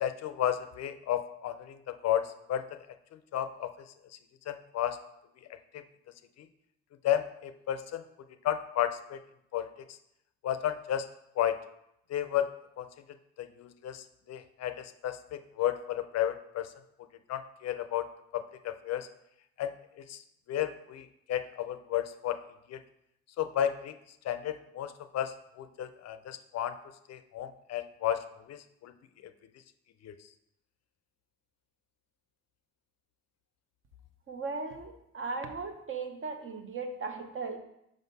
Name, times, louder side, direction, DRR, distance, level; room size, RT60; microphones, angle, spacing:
voice 1, 0.0-2.6 3.3-3.7 4.5-5.0 7.0-8.0 8.4-9.2 9.5-9.7 10.4-11.0 11.4-11.6 12.1-12.5 12.8-12.9 13.4-16.7 17.3-18.1 18.3-19.1 19.6-19.7 20.1-20.2 20.5-22.4 22.7-22.8 23.4-24.0 24.2-26.7 27.1-28.2 28.5-28.9 30.0-30.1, left 11 dB, 60° left, 10 dB, 0.5 m, -32 dB
voice 2, 34.3-37.6, right 4 dB, 45° right, 6 dB, 0.8 m, -37 dB
5.1 x 3.9 x 5.4 m, 0.81 s
cardioid pair, 90°, 30 cm